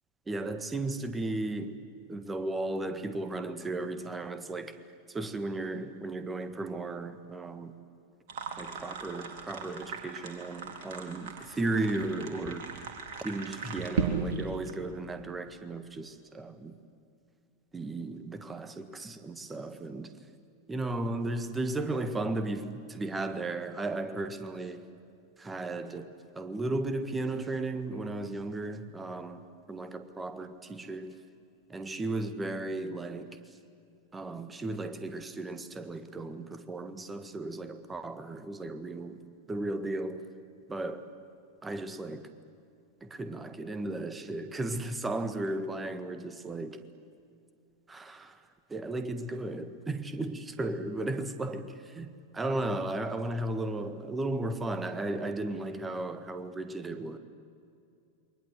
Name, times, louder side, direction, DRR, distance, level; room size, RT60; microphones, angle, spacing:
voice 1, 0.3-1.8 2.1-4.8 5.1-7.7 8.6-12.8 13.2-16.7 17.7-20.1 20.7-24.8 25.4-29.4 29.7-31.2 31.7-33.4 34.1-39.2 39.5-40.3 40.7-41.1 41.6-42.3 43.0-46.8 47.9-48.4 48.7-57.2, right 2 dB, 15° right, 1.7 m, -35 dB
sound 1, 8.3-14.7, right 5 dB, 50° right, 4.0 m, -37 dB
28.5 x 23.5 x 8.2 m
figure-of-eight pair, 90°, 0 cm